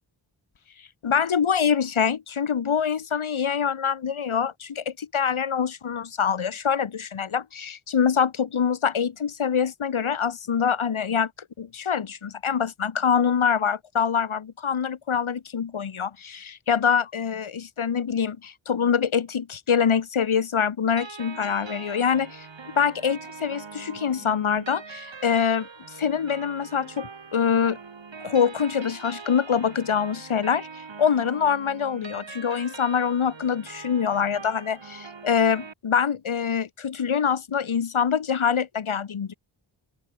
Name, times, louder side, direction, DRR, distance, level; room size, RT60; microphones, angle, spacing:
voice 1, 1.0-11.3 11.6-22.5 22.8-25.7 26.0-27.8 28.2-30.7 31.0-39.3, left 7 dB, 90° left, 2.9 m, -25 dB
sound 1, 21.0-35.7, right 5 dB, 70° right, 6.9 m, -42 dB
open air
cardioid pair, 50°, 47 cm